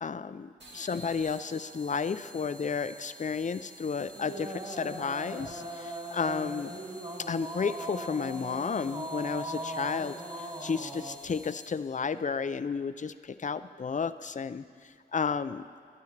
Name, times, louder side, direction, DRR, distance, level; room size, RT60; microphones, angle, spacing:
voice 1, 0.0-6.8 7.3-14.6 15.1-15.6, left 5 dB, 45° left, 13 dB, 0.4 m, -32 dB
sound 1, 0.6-12.0, right 1 dB, 75° right, 2.0 m, -51 dB
sound 2, 4.1-11.2, right 1 dB, 30° right, 2.6 m, -39 dB
23.5 x 9.6 x 3.3 m, 2.2 s
wide cardioid pair, 80°, 19 cm